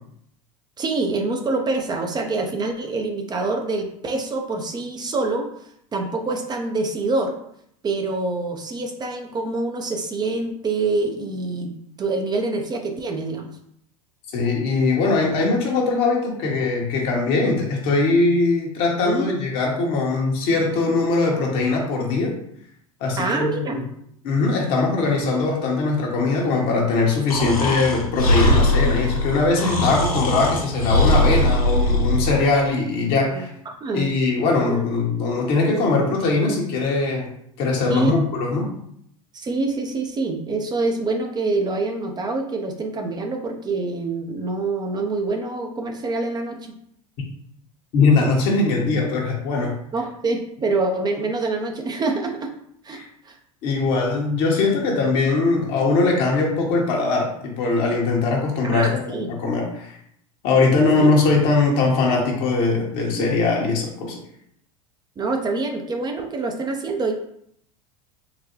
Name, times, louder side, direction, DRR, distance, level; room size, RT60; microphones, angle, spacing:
voice 1, 0.8-5.5 5.9-7.4 7.8-13.5 19.0-19.3 23.2-23.8 33.2-34.1 34.7-34.9 37.9-38.2 39.3-46.7 49.9-52.5 52.8-53.4 58.6-59.3 60.9-61.1 65.2-67.1, right 3 dB, 25° right, 3 dB, 0.5 m, -26 dB
voice 2, 14.3-22.3 23.0-23.8 24.2-33.5 33.9-37.3 37.6-38.7 47.9-49.7 52.9-53.0 53.6-60.0 60.4-64.2, left 3 dB, 55° left, -1 dB, 1.0 m, -21 dB
Breathing, 27.3-32.4, left 1 dB, 90° left, 0.8 m, -20 dB
3.9 x 2.2 x 2.9 m, 0.69 s
hypercardioid pair, 90°, 18 cm